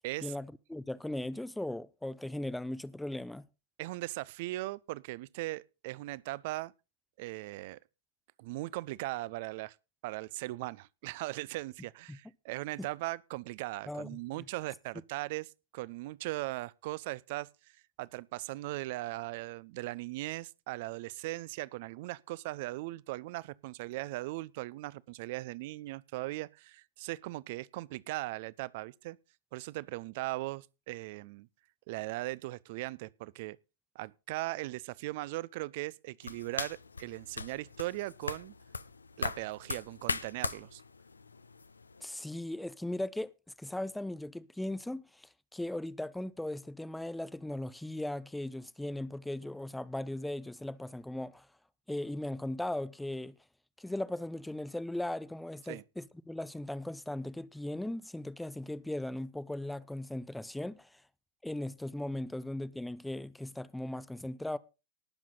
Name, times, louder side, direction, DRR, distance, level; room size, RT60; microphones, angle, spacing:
voice 1, 0.2-3.4 12.1-12.2 12.8-12.9 13.9-14.1 14.4-14.5 42.0-43.3 43.6-51.5 51.9-53.3 53.8-61.0 61.4-64.6, left 1 dB, 5° left, 0.6 m, -38 dB
voice 2, 3.8-6.7 7.2-7.8 8.4-9.7 10.0-17.5 18.0-29.2 29.5-31.5 31.9-33.6 33.9-38.5 39.2-40.8 55.7-55.8, right 19 dB, 50° right, 0.5 m, -39 dB
sound 1, 36.2-42.0, left 4 dB, 75° left, 0.7 m, -40 dB
19.0 x 7.4 x 3.9 m
figure-of-eight pair, 90°, 0 cm